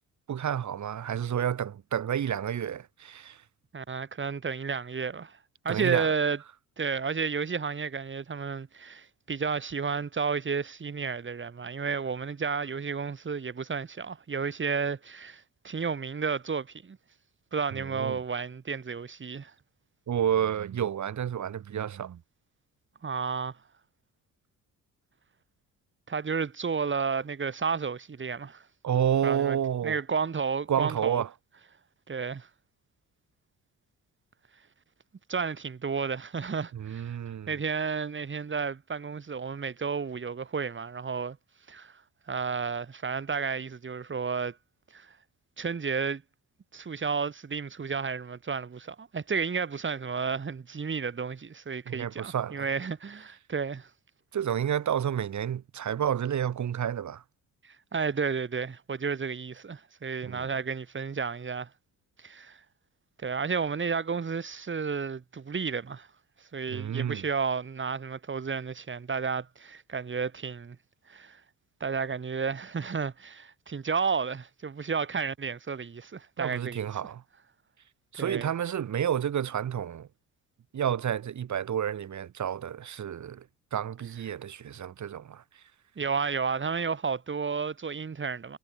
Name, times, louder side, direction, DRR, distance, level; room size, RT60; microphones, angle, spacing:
voice 1, 0.3-3.4 5.7-6.1 17.7-18.2 20.1-22.2 28.8-30.0 30.7-31.3 36.7-37.5 51.9-52.7 54.3-57.2 60.2-60.5 66.7-67.2 76.4-77.2 78.1-80.1 80.7-83.5 83.7-85.4, right 9 dB, 55° right, 2.1 m, -30 dB
voice 2, 3.7-5.4 5.6-6.4 6.8-17.0 17.5-19.5 23.0-23.6 26.1-28.6 29.2-29.6 29.8-31.2 32.1-32.5 35.3-37.2 37.5-41.4 41.7-42.0 42.3-44.6 44.9-45.1 45.6-46.2 46.7-53.9 57.6-61.7 62.2-62.6 63.2-66.1 66.5-70.8 71.1-71.4 71.8-76.9 78.2-78.5 86.0-88.6, right 5 dB, 35° right, 2.5 m, -32 dB
supercardioid pair, 75°, 35 cm